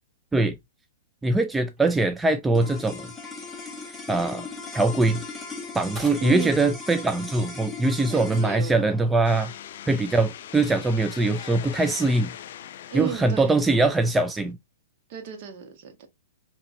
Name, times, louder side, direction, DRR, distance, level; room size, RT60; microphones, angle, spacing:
voice 1, 1.2-3.1 4.1-4.5 4.7-5.2 5.7-9.5 9.9-12.3 12.9-14.6, right 2 dB, 10° right, 0.3 m, -22 dB
sound 1, 1.6-10.8, right 1 dB, 25° right, 3.0 m, -52 dB
sound 2, 2.5-13.0, left 4 dB, 5° left, 1.2 m, -39 dB
voice 2, 6.2-6.6 8.1-8.8 10.1-10.2 12.9-13.5 15.1-16.1, right 6 dB, 50° right, 1.6 m, -34 dB
sound 3, 9.2-14.4, left 10 dB, 60° left, 0.4 m, -41 dB
5.4 x 2.9 x 2.6 m
hypercardioid pair, 115°, 0 cm